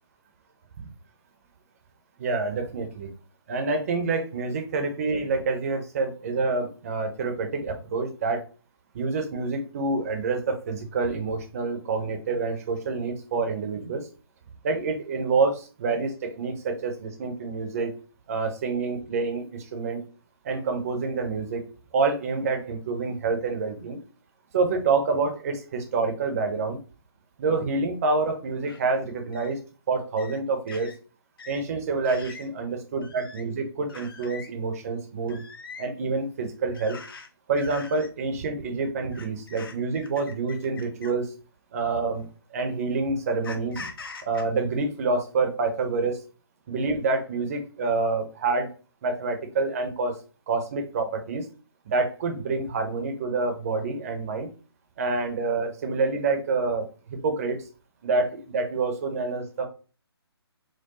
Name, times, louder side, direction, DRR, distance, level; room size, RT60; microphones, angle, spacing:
voice 1, 2.2-3.1 3.5-8.4 8.9-14.1 14.6-17.9 18.3-20.0 20.4-21.6 21.9-24.0 24.5-26.8 27.4-29.6 29.9-30.9 31.5-35.4 35.8-37.0 37.5-41.3 41.7-43.9 44.2-46.2 46.7-48.7 49.0-50.2 50.5-51.4 51.9-54.5 55.0-57.6 58.0-59.7, right 3 dB, 35° right, 5 dB, 0.8 m, -27 dB
sound 1, 28.7-28.8 29.3-29.5 30.2-30.4 30.7-30.9 31.4-31.6 32.0-32.5 33.0-33.4 33.9-34.5 35.3-35.9 36.7-37.3 37.5-38.1 39.1-41.2 42.1-42.3 43.4-44.4, left 4 dB, 60° left, 0.8 m, -42 dB
4.5 x 2.2 x 3.0 m, 0.36 s
figure-of-eight pair, 145°, 14 cm